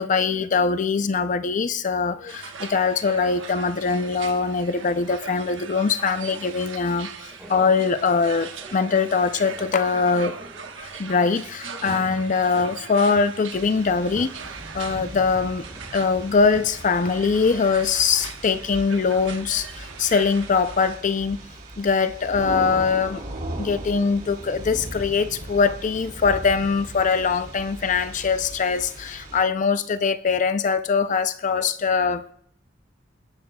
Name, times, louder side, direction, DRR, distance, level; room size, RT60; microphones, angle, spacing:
voice 1, 0.0-10.3 10.8-14.3 14.7-15.6 15.9-21.4 21.8-23.2 23.6-32.2, left 5 dB, 40° left, 0.5 m, -22 dB
sound 1, 2.3-21.0, right 6 dB, 75° right, 1.2 m, -40 dB
sound 2, 7.3-11.4 11.8-18.3, right 1 dB, 5° right, 5.1 m, -44 dB
sound 3, 13.5-29.4, right 1 dB, 50° right, 6.6 m, -38 dB
27.5 x 10.5 x 2.3 m
head